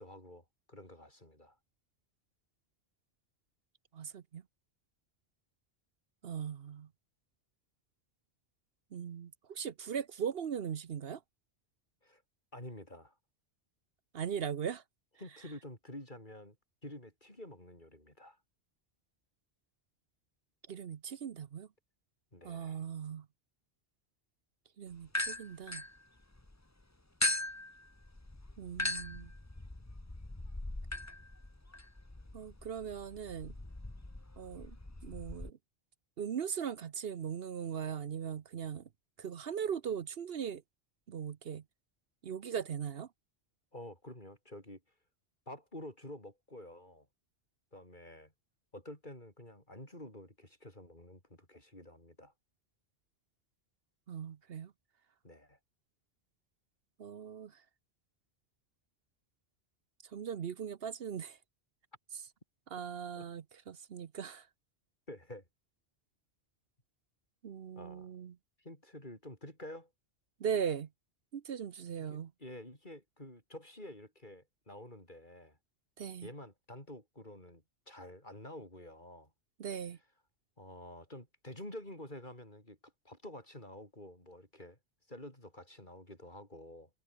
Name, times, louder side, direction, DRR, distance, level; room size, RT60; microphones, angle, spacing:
voice 1, 0.0-1.6 12.0-12.2 12.5-13.2 15.2-16.6 16.8-18.4 22.3-22.8 43.7-44.8 45.5-47.1 47.7-48.3 48.7-52.3 55.2-55.6 63.2-63.3 65.1-65.4 67.8-68.1 68.6-69.9 72.0-75.6 76.2-79.3 80.6-82.8 83.0-84.8 85.1-86.9, left 1 dB, 45° left, 7.5 m, -49 dB
voice 2, 3.9-4.4 6.2-6.9 8.9-11.2 14.1-14.8 20.7-21.7 22.4-23.3 24.8-25.8 28.6-29.3 32.3-33.5 34.4-34.8 35.0-35.6 36.2-38.9 39.2-40.6 41.1-41.6 42.2-43.1 54.1-54.7 57.0-57.5 60.1-61.4 62.7-64.5 67.4-68.4 70.4-70.9 71.3-72.3 76.0-76.3 79.6-80.0, right 7 dB, 65° right, 1.0 m, -39 dB
sound 1, 25.1-26.5 27.2-35.5, left 2 dB, 15° left, 1.4 m, -39 dB
omnidirectional pair, 1.1 m